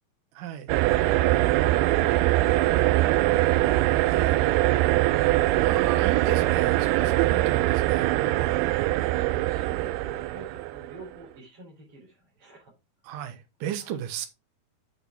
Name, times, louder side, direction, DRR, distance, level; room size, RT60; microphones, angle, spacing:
voice 1, 0.3-0.7 4.1-4.4 5.6-8.6 13.0-14.3, right 10 dB, 70° right, 2.5 m, -35 dB
sound 1, 0.7-11.0, right 17 dB, 85° right, 2.5 m, -23 dB
voice 2, 8.3-12.7 13.8-13.9, right 2 dB, 35° right, 4.5 m, -48 dB
8.4 x 6.6 x 3.4 m
omnidirectional pair, 4.5 m